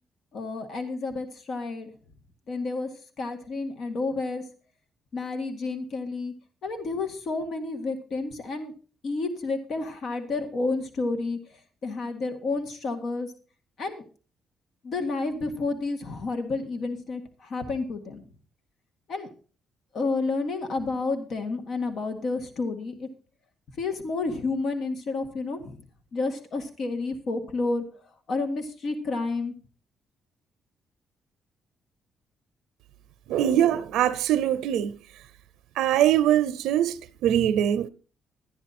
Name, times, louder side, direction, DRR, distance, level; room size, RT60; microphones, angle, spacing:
voice 1, 0.3-1.9 2.5-2.9 3.2-4.4 5.1-6.3 6.6-8.7 9.0-13.3 13.8-14.1 14.8-18.2 19.1-19.3 19.9-23.1 23.8-25.8 26.1-29.5, left 3 dB, 60° left, 1.9 m, -30 dB
voice 2, 33.3-35.0 35.8-37.9, right 11 dB, 90° right, 0.5 m, -23 dB
12.5 x 10.0 x 4.2 m
cardioid pair, 90°, 0 cm